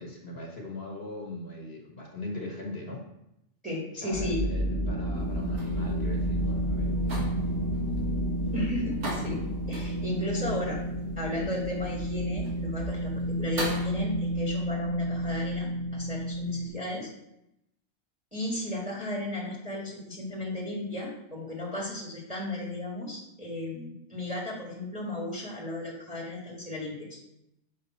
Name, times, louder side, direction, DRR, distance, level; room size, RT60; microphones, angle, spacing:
voice 1, 0.0-3.0 3.9-7.3 7.8-7.9, left 1 dB, 50° left, 0 dB, 1.4 m, -40 dB
voice 2, 3.6-4.4 8.4-9.4 9.7-10.8 11.2-17.1 18.3-27.2, left 1 dB, 5° right, -3 dB, 1.6 m, -35 dB
sound 1, 4.1-16.7, right 1 dB, 20° left, 1.0 m, -30 dB
sound 2, 5.2-13.9, right 1 dB, 65° right, 1.9 m, -42 dB
6.7 x 5.0 x 4.2 m, 0.84 s
omnidirectional pair, 1.3 m